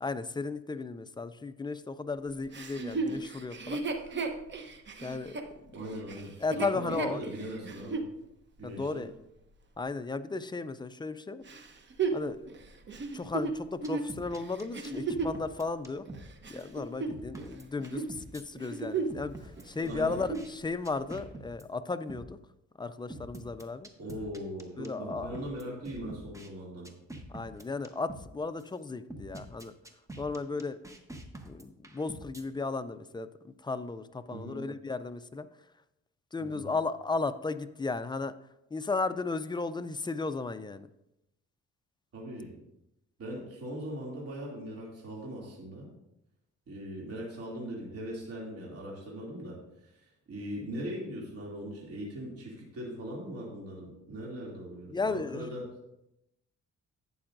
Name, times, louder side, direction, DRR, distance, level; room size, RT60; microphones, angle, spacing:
voice 1, 0.0-3.8 5.0-5.4 6.4-7.2 8.6-9.1 9.8-11.5 12.1-12.4 13.1-16.0 16.5-22.4 22.8-23.9 24.8-25.3 27.3-29.7 30.2-30.8 31.4-35.5 36.3-38.3 38.7-40.9 54.9-55.5, left 3 dB, 15° left, 11 dB, 0.3 m, -35 dB
Chuckle chortle, 2.5-8.1 8.7-8.8 11.5-15.4 16.1-17.5 17.8-18.1 18.5-19.3 19.6-19.7 20.1-20.5 21.2-21.3, right 4 dB, 40° right, 0.9 m, -35 dB
voice 2, 5.7-8.0 8.6-9.1 19.8-20.2 24.0-26.9 34.3-34.6 36.4-36.7 42.1-42.5 43.2-45.9 46.7-55.7, equal, 55° right, -4 dB, 2.6 m, -40 dB
sound 1, 13.8-16.3 16.6-16.7 17.1-18.4 19.1-20.5 20.8-21.6 22.1-22.3 23.1-26.5 26.8-28.3 28.6-28.7 29.1-32.4, right 1 dB, 10° right, 0.9 m, -45 dB
11.5 x 8.6 x 2.5 m, 0.86 s
cardioid pair, 125°, 29 cm